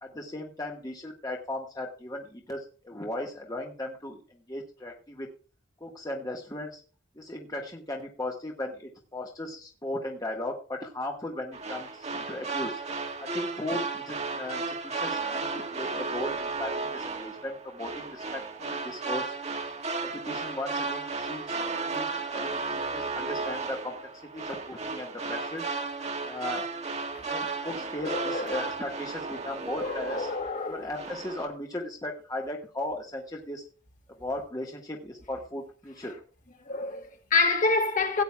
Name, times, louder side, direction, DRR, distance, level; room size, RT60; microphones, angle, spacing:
voice 1, 0.0-5.3 5.8-6.8 7.2-12.8 13.2-19.3 20.0-21.6 21.9-22.1 22.3-22.6 22.9-24.0 24.3-25.6 26.2-26.7 27.2-30.3 30.7-33.7 34.2-36.1, left 1 dB, 20° left, 1.4 m, -37 dB
sound 1, 11.5-30.6 30.9-31.5, right 4 dB, 35° right, 1.6 m, -34 dB
voice 2, 28.0-28.6 29.8-30.9 36.7-38.2, left 3 dB, 40° left, 2.1 m, -27 dB
17.5 x 9.1 x 2.3 m
head